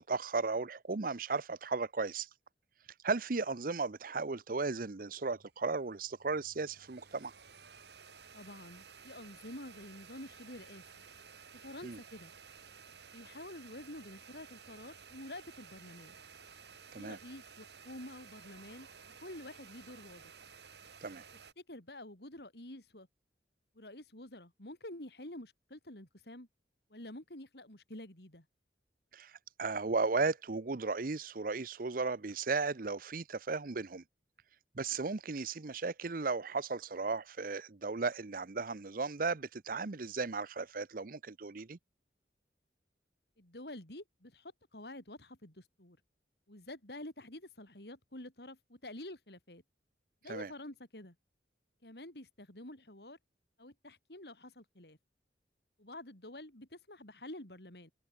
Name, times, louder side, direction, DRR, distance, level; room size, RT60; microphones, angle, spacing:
voice 1, 0.0-2.3 3.0-7.3 11.8-12.0 16.9-17.2 21.0-21.2 29.1-34.0 34.7-41.8 50.3-50.5, right 4 dB, 50° right, 0.8 m, -35 dB
sound 1, 5.2-5.7 6.0-21.5, right 6 dB, 75° right, 4.2 m, -55 dB
voice 2, 8.3-11.0 11.6-12.3 13.1-16.1 16.9-18.9 19.2-20.3 21.6-23.1 23.7-26.5 26.9-28.4 43.4-46.0 46.5-49.6 50.2-51.1 51.8-53.2 53.6-55.0 55.8-57.9, left 1 dB, 65° left, 4.7 m, -48 dB
head